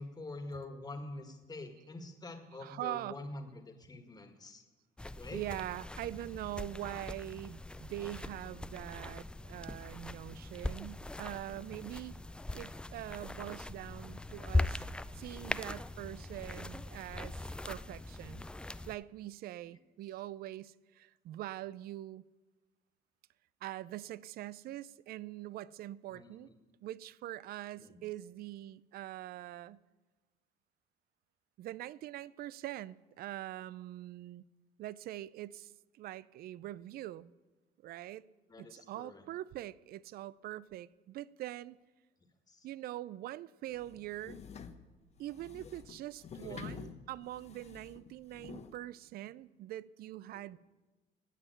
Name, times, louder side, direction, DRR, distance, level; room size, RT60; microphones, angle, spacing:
voice 1, 0.0-4.6 5.2-5.4 26.1-26.6 27.8-28.0 38.5-39.2 42.5-42.7 46.4-46.8 50.3-50.4, left 2 dB, 25° left, 1.8 m, -46 dB
voice 2, 2.6-3.2 5.3-12.2 12.5-14.8 15.1-18.4 18.9-22.3 23.6-26.5 26.8-29.8 31.6-34.4 34.8-37.3 37.8-38.3 38.6-41.8 42.6-44.4 45.2-50.6, right 14 dB, 65° right, 0.4 m, -43 dB
sound 1, 5.0-19.0, left 2 dB, 5° left, 0.3 m, -40 dB
sound 2, 43.7-48.8, left 6 dB, 40° left, 0.9 m, -49 dB
16.0 x 5.7 x 9.4 m
cardioid pair, 110°, 17 cm